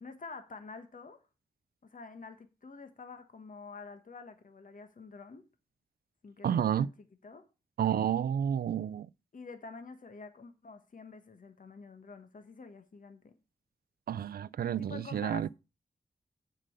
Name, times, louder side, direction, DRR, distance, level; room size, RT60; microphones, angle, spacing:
voice 1, 0.0-1.2 1.9-5.4 6.2-6.9 7.2-7.4 9.3-13.3 14.8-15.5, left 4 dB, 60° left, 1.3 m, -48 dB
voice 2, 6.4-6.9 7.8-9.1 14.1-15.5, right 9 dB, 75° right, 0.4 m, -30 dB
7.5 x 5.3 x 6.5 m
cardioid pair, 40°, 16 cm